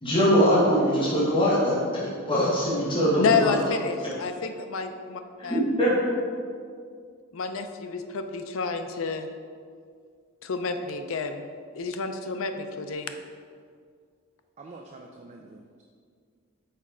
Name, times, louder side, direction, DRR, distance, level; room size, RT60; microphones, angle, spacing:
voice 1, 0.0-1.8 2.3-3.5 5.4-6.1, equal, 25° left, -9 dB, 1.5 m, -22 dB
voice 2, 3.2-5.6 7.3-9.3 10.4-11.4 11.7-13.1, left 5 dB, 70° left, 7 dB, 0.5 m, -29 dB
voice 3, 14.6-15.8, right 2 dB, 30° right, 1 dB, 0.3 m, -46 dB
5.8 x 4.3 x 4.9 m, 2.1 s
head